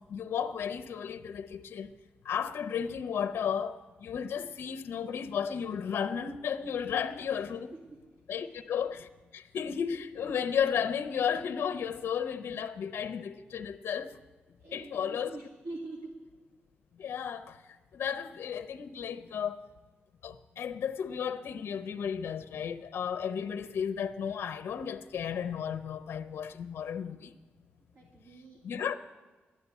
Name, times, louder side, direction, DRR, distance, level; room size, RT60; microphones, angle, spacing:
voice 1, 0.0-1.9 2.2-7.7 8.3-14.2 14.7-15.4 17.0-19.7 20.2-27.3 28.6-28.9, left 7 dB, 70° left, 7 dB, 0.6 m, -34 dB
voice 2, 8.1-8.6 14.6-16.1 27.9-29.0, right 2 dB, 85° right, -2 dB, 2.2 m, -45 dB
11.5 x 11.0 x 8.2 m, 1.3 s
wide cardioid pair, 170°, 4 cm